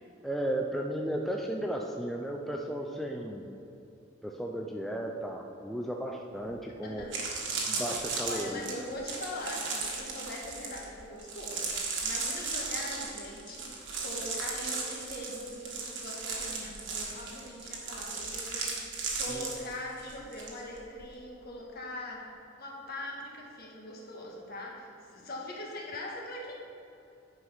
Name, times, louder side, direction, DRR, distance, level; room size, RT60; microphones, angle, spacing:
voice 1, 0.2-3.5 4.2-7.0 7.7-8.6 19.3-19.5, right 1 dB, ahead, 0 dB, 0.4 m, -34 dB
sound 1, 6.5-6.6 7.0-20.5 20.8-21.1, right 4 dB, 70° right, 1.5 m, -36 dB
voice 2, 6.8-7.5 8.2-22.2 22.6-26.5, left 1 dB, 55° left, -2 dB, 1.7 m, -42 dB
9.7 x 4.9 x 5.5 m, 2.9 s
head